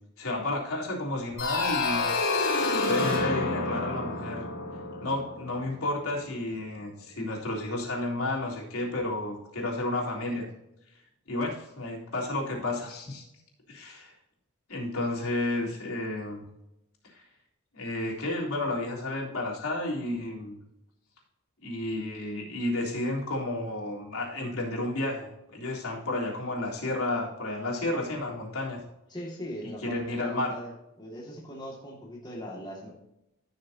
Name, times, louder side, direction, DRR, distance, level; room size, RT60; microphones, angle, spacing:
voice 1, 0.2-2.2 2.9-4.5 5.0-10.5 11.3-13.2 13.7-14.1 14.7-16.4 17.1-17.2 17.7-20.6 21.6-28.8 29.8-30.5, left 2 dB, 90° left, -3 dB, 3.7 m, -31 dB
sound 1, 1.4-6.0, left 3 dB, 75° left, 3.7 m, -29 dB
voice 2, 29.1-30.7 31.0-32.9, equal, 20° left, -3 dB, 2.0 m, -40 dB
15.0 x 6.5 x 2.8 m, 0.85 s
head